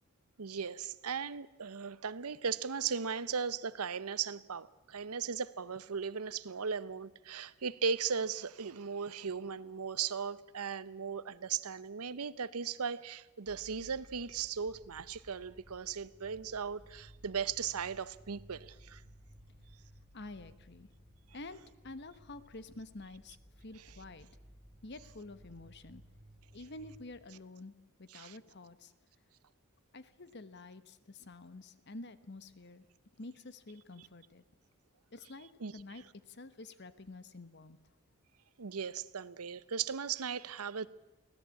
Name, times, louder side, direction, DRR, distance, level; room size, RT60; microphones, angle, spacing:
voice 1, 0.4-19.0 28.1-28.4 35.6-35.7 38.6-40.9, right 6 dB, 85° right, 0.8 m, -37 dB
sound 1, 13.5-27.2, equal, 5° right, 1.4 m, -58 dB
voice 2, 20.1-20.9 21.3-24.3 24.8-26.0 26.5-28.9 29.9-32.8 33.2-34.4 35.1-37.8, left 2 dB, 50° left, 1.1 m, -49 dB
24.0 x 16.5 x 8.5 m
head